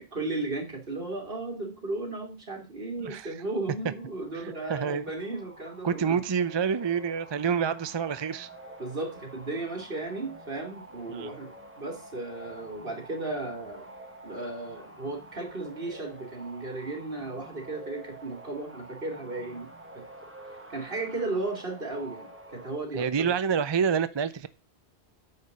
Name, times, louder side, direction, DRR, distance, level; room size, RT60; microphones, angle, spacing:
voice 1, 0.0-6.2 8.8-11.5 11.8-13.9 14.2-19.7 19.9-20.0 20.7-23.3, right 2 dB, 60° right, 2.9 m, -35 dB
voice 2, 3.0-3.3 4.3-5.0 5.8-8.5 11.1-11.3 22.9-24.5, right 6 dB, 35° right, 0.4 m, -28 dB
sound 1, 3.6-22.8, right 1 dB, 10° right, 1.5 m, -48 dB
9.4 x 5.0 x 6.7 m
omnidirectional pair, 1.1 m